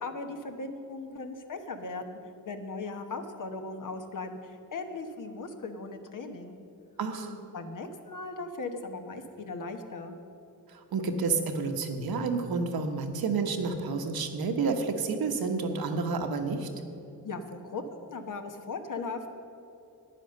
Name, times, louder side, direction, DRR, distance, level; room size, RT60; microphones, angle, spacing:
voice 1, 0.0-2.2 2.5-6.5 7.2-10.1 17.2-19.3, left 3 dB, 55° left, 5 dB, 1.1 m, -38 dB
voice 2, 7.0-7.3 10.7-16.7, right 4 dB, 75° right, 5 dB, 1.2 m, -30 dB
10.0 x 9.3 x 6.6 m, 2.7 s
cardioid pair, 80°, 37 cm